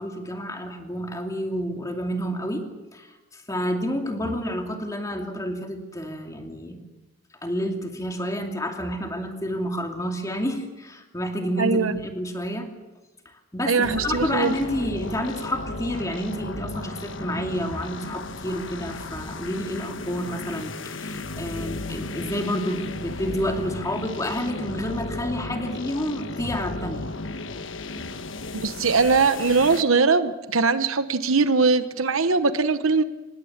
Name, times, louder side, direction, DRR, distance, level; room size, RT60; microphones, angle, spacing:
voice 1, 0.0-6.8 7.4-12.7 13.2-27.1 28.0-28.1, equal, 15° left, 3 dB, 2.6 m, -29 dB
voice 2, 11.6-12.0 13.7-14.5 28.5-33.0, right 4 dB, 75° right, 11 dB, 1.0 m, -21 dB
sound 1, 13.8-29.8, left 2 dB, 65° left, 1.2 m, -35 dB
25.5 x 20.0 x 7.3 m, 1.1 s
head